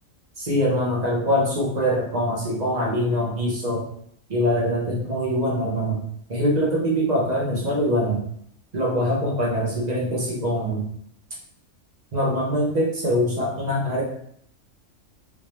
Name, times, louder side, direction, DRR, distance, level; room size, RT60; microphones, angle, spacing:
voice 1, 0.4-3.8 4.3-6.0 6.3-8.2 8.7-10.9 12.1-14.0, equal, 35° right, -3 dB, 0.9 m, -23 dB
3.4 x 2.8 x 3.2 m, 0.68 s
omnidirectional pair, 1.4 m